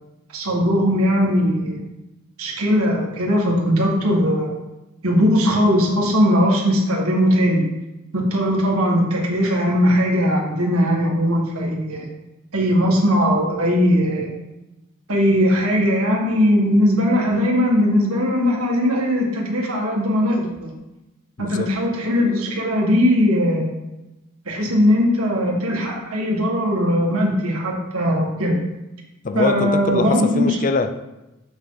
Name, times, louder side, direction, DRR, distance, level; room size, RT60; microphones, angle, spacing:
voice 1, 0.3-1.8 2.4-4.5 5.0-7.6 8.1-12.1 12.5-14.3 15.1-20.7 21.4-23.8 24.5-28.6 29.3-30.6, equal, 80° right, -1 dB, 1.9 m, -19 dB
voice 2, 21.4-21.7 29.2-30.9, left 3 dB, 35° left, 9 dB, 0.5 m, -23 dB
7.0 x 6.4 x 4.0 m, 0.98 s
head